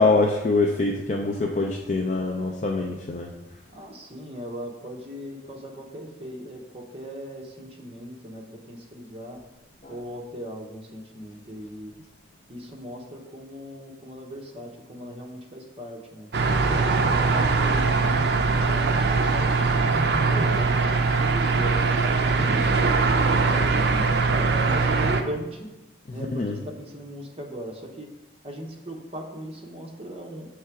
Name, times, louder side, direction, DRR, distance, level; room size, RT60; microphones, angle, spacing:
voice 1, 0.0-3.3 9.8-9.9 26.1-26.5, left 3 dB, 40° left, 0 dB, 0.4 m, -24 dB
voice 2, 3.7-9.4 9.9-11.9 12.5-16.3 16.6-19.8 20.3-23.9 24.3-25.7 26.1-28.1 28.4-30.5, equal, 30° right, 0 dB, 0.9 m, -38 dB
sound 1, 16.3-25.2, right 4 dB, 60° right, 0.5 m, -21 dB
6.5 x 3.3 x 4.6 m, 1.0 s
head